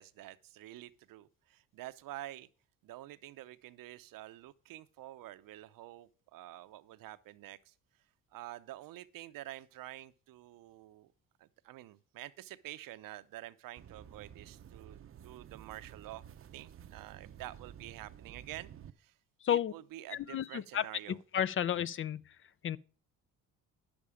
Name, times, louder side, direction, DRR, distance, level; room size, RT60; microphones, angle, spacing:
voice 1, 0.0-2.5 2.8-7.7 8.3-11.1 11.4-16.2 16.5-18.7 19.0-19.1 19.5-21.2, right 15 dB, 70° right, 0.7 m, -48 dB
sound 1, 13.8-18.9, right 9 dB, 40° right, 0.6 m, -52 dB
voice 2, 20.1-20.9 21.3-22.2 22.6-22.8, left 10 dB, 35° left, 0.4 m, -32 dB
10.5 x 7.1 x 4.9 m
cardioid pair, 110°, 34 cm